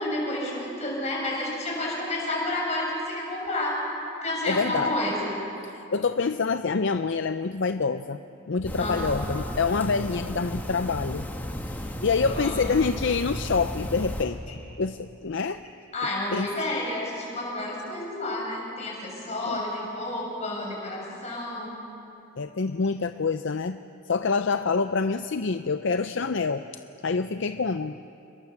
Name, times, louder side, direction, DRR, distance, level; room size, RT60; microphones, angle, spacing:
voice 1, 0.0-3.8 4.2-5.4 8.8-9.3 12.3-12.7 14.5-14.6 15.9-21.8, left 1 dB, 30° left, -2 dB, 7.0 m, -30 dB
voice 2, 4.5-4.9 5.6-8.2 8.5-11.3 11.7-14.4 14.8-15.6 16.3-16.5 19.5-19.6 22.4-23.8 24.0-26.6 27.0-28.0, left 4 dB, 55° left, 10 dB, 0.5 m, -26 dB
sound 1, 8.6-14.2, equal, 10° left, 1.8 m, -34 dB
28.5 x 22.0 x 7.2 m, 2.9 s
head